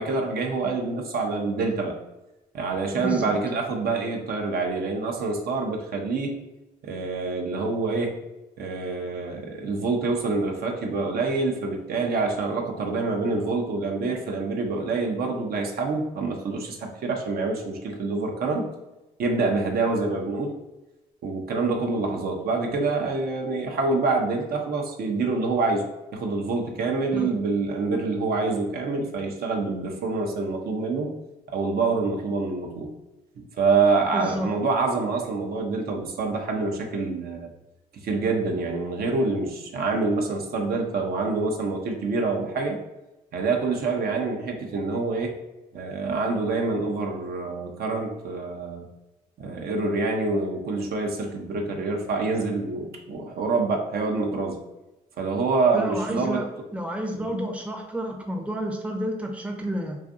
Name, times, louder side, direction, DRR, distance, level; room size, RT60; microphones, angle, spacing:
voice 1, 0.0-2.0 2.5-6.4 6.8-8.2 8.6-18.7 19.2-20.6 21.2-25.8 26.1-31.1 31.5-32.9 33.4-37.5 37.9-42.8 43.3-45.4 45.7-48.9 49.4-54.6 55.2-56.5, right 3 dB, 65° right, 2 dB, 0.5 m, -26 dB
voice 2, 3.0-3.4 27.1-27.3 34.1-34.5 55.7-56.5 56.7-60.0, equal, 5° right, 2 dB, 0.5 m, -30 dB
2.5 x 2.4 x 2.5 m, 1.0 s
supercardioid pair, 60°, 17 cm